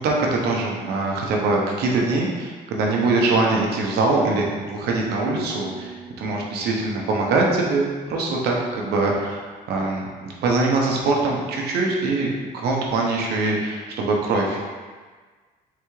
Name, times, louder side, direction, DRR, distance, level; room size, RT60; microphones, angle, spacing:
voice 1, 0.0-14.6, right 3 dB, 70° right, -1 dB, 0.8 m, -23 dB
sound 1, 5.2-8.2, right 1 dB, 40° left, 1.5 m, -41 dB
3.9 x 3.4 x 3.2 m, 1.5 s
cardioid pair, 110°, 17 cm